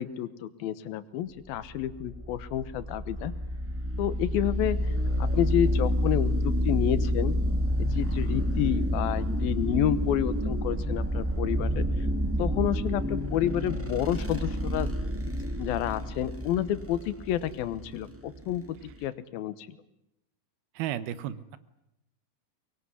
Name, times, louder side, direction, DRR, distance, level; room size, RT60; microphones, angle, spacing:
voice 1, 0.0-3.3 4.0-7.4 7.8-12.1 12.4-14.9 15.3-18.6 19.0-19.7, left 11 dB, 80° left, 15 dB, 2.9 m, -30 dB
sound 1, 1.6-19.0, equal, 10° right, 0.7 m, -29 dB
voice 2, 20.8-21.6, right 11 dB, 85° right, 15 dB, 3.0 m, -33 dB
24.0 x 21.0 x 9.7 m, 0.84 s
omnidirectional pair, 4.2 m